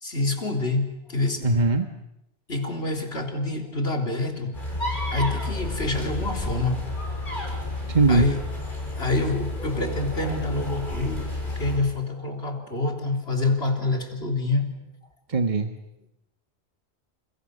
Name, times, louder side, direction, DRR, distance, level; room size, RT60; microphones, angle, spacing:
voice 1, 0.0-1.5 2.5-4.6 5.1-6.8 8.1-8.4 9.0-14.7, left 2 dB, 70° left, 3 dB, 3.9 m, -27 dB
voice 2, 1.4-1.9 7.9-8.3 15.3-15.7, right 3 dB, 45° right, 6 dB, 1.6 m, -20 dB
sound 1, 4.5-11.8, left 2 dB, 50° left, 6.9 m, -31 dB
30.0 x 29.0 x 6.6 m, 0.84 s
omnidirectional pair, 1.1 m